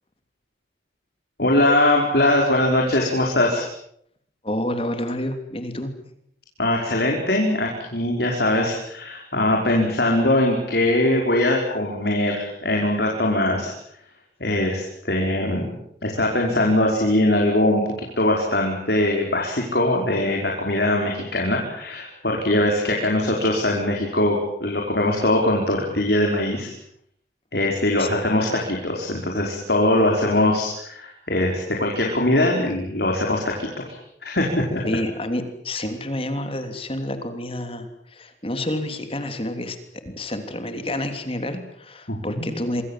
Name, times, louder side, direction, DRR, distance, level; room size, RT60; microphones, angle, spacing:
voice 1, 1.4-3.6 6.6-13.7 14.4-15.7 16.0-26.7 27.5-33.9 34.2-35.0 42.1-42.5, left 1 dB, 65° left, 0 dB, 5.4 m, -21 dB
voice 2, 4.4-5.9 28.0-28.1 34.8-39.8 40.0-42.8, left 1 dB, 30° left, 8 dB, 3.1 m, -29 dB
26.5 x 24.5 x 7.6 m, 0.70 s
head